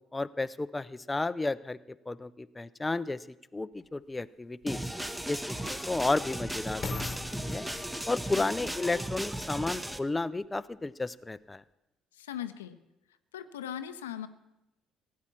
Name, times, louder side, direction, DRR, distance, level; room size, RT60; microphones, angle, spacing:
voice 1, 0.1-1.8 2.1-3.3 3.5-4.9 5.3-7.7 8.0-11.6, left 2 dB, 20° left, 14 dB, 0.4 m, -32 dB
sound 1, 3.8-3.9 4.6-9.9 10.6-10.7, left 4 dB, 40° left, 1.0 m, -44 dB
sound 2, 4.7-10.0, right 1 dB, 5° right, 0.9 m, -36 dB
voice 2, 12.1-12.8 13.3-14.3, left 10 dB, 80° left, 11 dB, 0.6 m, -39 dB
16.5 x 8.4 x 7.4 m, 0.94 s
figure-of-eight pair, 50°, 0 cm